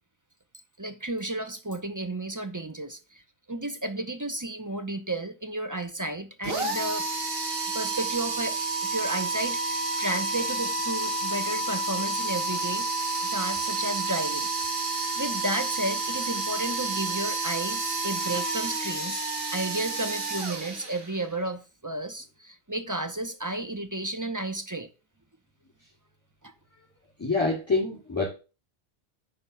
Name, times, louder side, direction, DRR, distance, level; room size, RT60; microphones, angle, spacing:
voice 1, 0.8-3.2 3.5-7.1 7.7-8.6 8.8-12.9 13.2-14.5 15.2-19.2 19.5-24.9 26.4-26.5, right 1 dB, 20° right, 0.7 m, -32 dB
sound 1, 6.4-21.3, right 3 dB, 65° right, 1.8 m, -30 dB
voice 2, 27.2-28.3, left 3 dB, 15° left, 2.5 m, -26 dB
8.8 x 5.5 x 5.5 m
omnidirectional pair, 1.1 m